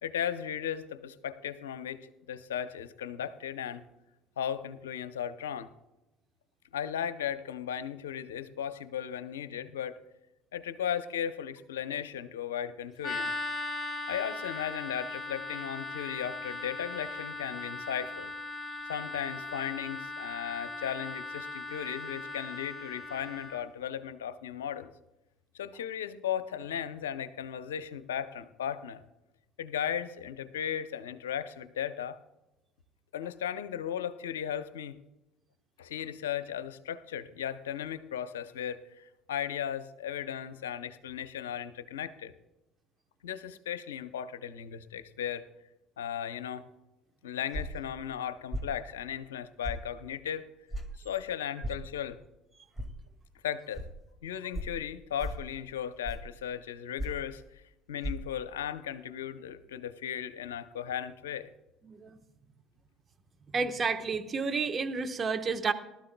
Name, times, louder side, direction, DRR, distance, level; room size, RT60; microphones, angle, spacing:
voice 1, 0.0-3.8 4.4-5.7 6.7-10.0 10.5-13.3 14.1-18.3 18.9-24.9 25.5-29.0 29.6-32.2 33.1-34.9 35.8-42.3 43.2-45.5 46.0-46.6 47.2-50.4 51.0-52.2 53.4-53.8 54.2-57.6 57.9-61.5, left 9 dB, 90° left, 12 dB, 0.6 m, -36 dB
sound 1, 13.0-23.6, left 2 dB, 15° left, 3.7 m, -39 dB
sound 2, 47.5-47.8 48.5-48.7 49.6-49.8 50.7-50.9 51.6-51.8 52.8-52.9 53.7-53.9 54.5-54.7 55.2-55.5 56.0-56.3 57.0-57.3 58.0-58.1, equal, 20° right, 2.1 m, -35 dB
voice 2, 61.8-62.2 63.5-65.7, right 4 dB, 35° right, 8 dB, 1.2 m, -30 dB
19.0 x 13.0 x 2.3 m, 0.97 s
hypercardioid pair, 65°, 0 cm